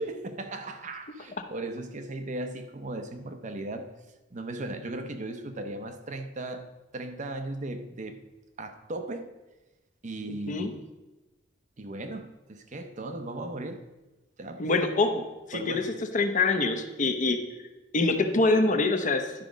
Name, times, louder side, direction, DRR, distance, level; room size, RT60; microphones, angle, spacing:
voice 1, 0.0-3.9 4.3-6.7 6.9-8.2 8.6-9.3 10.0-10.9 11.8-13.8 14.4-14.7 15.5-15.9, right 2 dB, 40° right, 0.6 m, -37 dB
voice 2, 14.6-15.9 16.1-17.4 17.9-19.3, left 3 dB, 40° left, 0.8 m, -25 dB
11.5 x 5.2 x 5.0 m
head